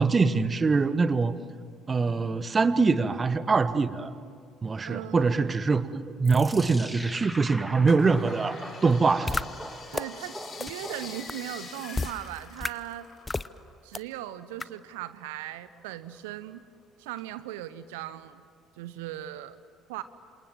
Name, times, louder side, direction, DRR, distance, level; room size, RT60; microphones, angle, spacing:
voice 1, 0.0-1.3 1.9-4.1 4.6-9.3, right 4 dB, 25° right, 14 dB, 1.3 m, -24 dB
voice 2, 4.8-5.5 9.9-13.1 13.8-16.6 17.0-18.4 18.8-19.6 19.9-20.0, right 13 dB, 65° right, 15 dB, 0.8 m, -38 dB
sound 1, 6.2-11.5, right 1 dB, 5° right, 2.1 m, -41 dB
sound 2, 7.9-13.7 14.0-15.3 15.7-16.6 17.1-17.2, left 4 dB, 45° left, 4.0 m, -45 dB
sound 3, 9.3-9.4 9.9-10.0 10.6-10.7 11.3-11.4 11.9-12.1 12.6-12.7 13.3-13.5 13.9-14.0 14.6-14.7, left 3 dB, 15° left, 0.7 m, -29 dB
27.5 x 27.0 x 7.5 m, 2.1 s
figure-of-eight pair, 55°, 0 cm